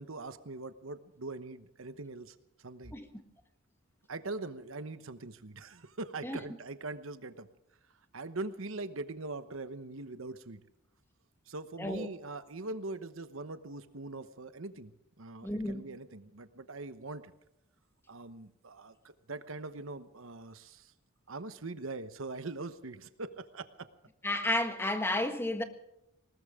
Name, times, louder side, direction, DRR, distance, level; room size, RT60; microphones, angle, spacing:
voice 1, 0.0-2.9 4.1-7.5 8.1-10.6 11.5-17.3 18.1-20.9 21.3-23.9, right 3 dB, 70° right, 1.0 m, -42 dB
voice 2, 2.9-3.2 6.2-6.4 11.8-12.1 15.4-15.9 24.2-25.6, left 1 dB, 10° left, 1.5 m, -32 dB
20.5 x 19.5 x 3.7 m
head